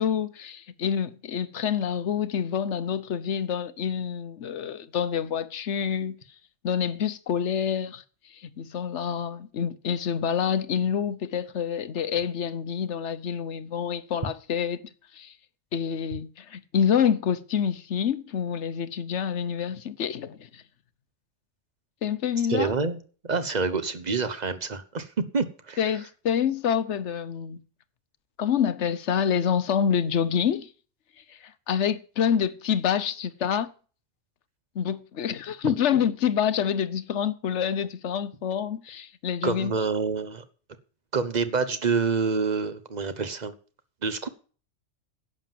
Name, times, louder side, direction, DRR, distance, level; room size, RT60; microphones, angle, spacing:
voice 1, 0.0-6.2 6.6-8.0 8.3-14.8 15.1-15.3 15.7-20.6 22.0-22.7 25.8-27.6 28.4-30.7 31.3-33.7 34.7-39.7, left 8 dB, 65° left, 1.2 m, -27 dB
voice 2, 22.5-23.0 23.2-25.1 25.3-25.9 35.6-36.0 39.4-40.4 41.1-43.5 44.0-44.3, right 4 dB, 35° right, 1.2 m, -27 dB
11.0 x 7.8 x 7.5 m
omnidirectional pair, 1.3 m